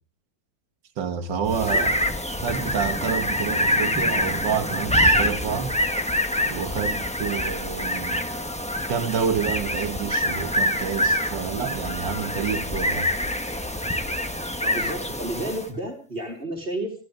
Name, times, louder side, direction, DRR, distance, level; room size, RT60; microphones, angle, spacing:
voice 1, 1.0-2.0 2.4-5.8 6.5-8.3 8.9-13.1, right 7 dB, 75° right, 2.1 m, -28 dB
sound 1, 1.4-15.7, equal, 5° left, 1.0 m, -25 dB
voice 2, 14.6-16.9, right 1 dB, 30° right, 4.2 m, -31 dB
29.5 x 12.0 x 3.8 m
omnidirectional pair, 2.0 m